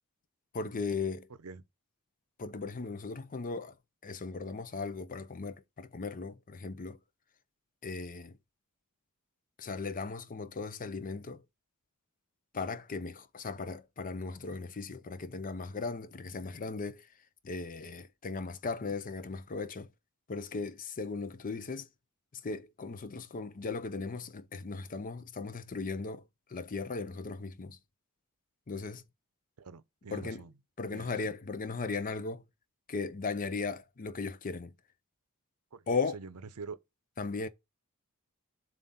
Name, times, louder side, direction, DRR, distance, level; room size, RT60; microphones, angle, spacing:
voice 1, 0.5-1.3 2.4-3.7 4.0-7.0 7.8-8.4 9.6-11.4 12.5-17.1 17.4-19.9 20.3-21.9 22.3-26.2 26.5-27.8 28.7-29.0 30.1-30.4 30.8-32.4 32.9-34.7 35.9-36.2 37.2-37.5, left 4 dB, 40° left, 0.5 m, -37 dB
voice 2, 29.6-30.5 30.9-31.3 35.7-36.8, right 4 dB, 75° right, 0.6 m, -45 dB
7.4 x 2.5 x 5.4 m
head